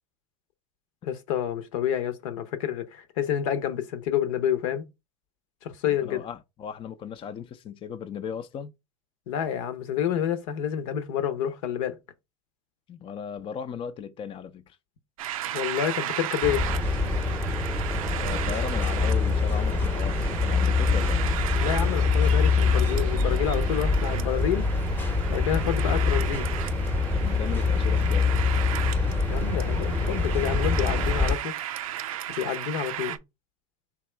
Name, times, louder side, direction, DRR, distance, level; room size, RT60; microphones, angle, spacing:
voice 1, 1.0-4.8 5.6-6.3 9.3-12.0 15.5-16.6 21.5-24.7 25.3-26.5 29.3-31.5 32.3-33.2, left 9 dB, 75° left, 0.9 m, -28 dB
voice 2, 5.8-8.7 12.9-14.8 18.2-21.2 27.2-28.3, left 7 dB, 30° left, 0.5 m, -36 dB
sound 1, 15.2-33.2, right 12 dB, 90° right, 0.5 m, -35 dB
sound 2, 16.4-31.3, left 4 dB, 10° left, 0.8 m, -25 dB
3.5 x 2.9 x 4.3 m
supercardioid pair, 110°, 17 cm